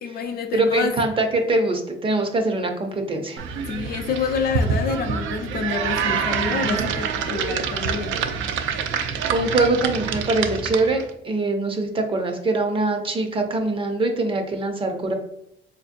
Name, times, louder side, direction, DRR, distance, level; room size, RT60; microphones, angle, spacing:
voice 1, 0.0-0.9 3.7-8.2, left 5 dB, 50° left, 6 dB, 0.4 m, -27 dB
voice 2, 0.5-3.4 6.5-6.9 9.3-15.1, right 2 dB, 25° right, 4 dB, 0.5 m, -23 dB
sound 1, 3.4-11.1, right 6 dB, 85° right, 0.4 m, -26 dB
4.4 x 2.6 x 2.5 m, 0.83 s
cardioid pair, 160°, 19 cm